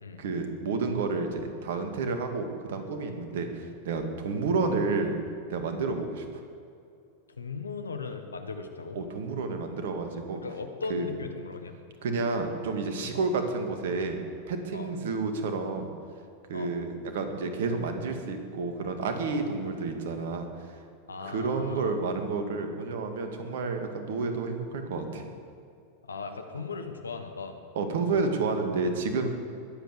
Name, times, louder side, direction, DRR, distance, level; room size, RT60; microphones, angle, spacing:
voice 1, 0.2-5.2 5.5-6.2 9.0-10.4 10.9-11.1 12.0-14.2 14.5-15.9 16.5-20.5 21.2-25.2 27.8-29.3, right 4 dB, 60° right, 6 dB, 2.0 m, -30 dB
voice 2, 7.4-9.0 10.4-11.8 13.1-13.2 14.7-14.9 16.5-16.7 21.1-22.0 26.0-27.6, left 4 dB, 80° left, 7 dB, 1.4 m, -38 dB
21.0 x 8.2 x 6.9 m, 2.5 s
figure-of-eight pair, 90°, 0 cm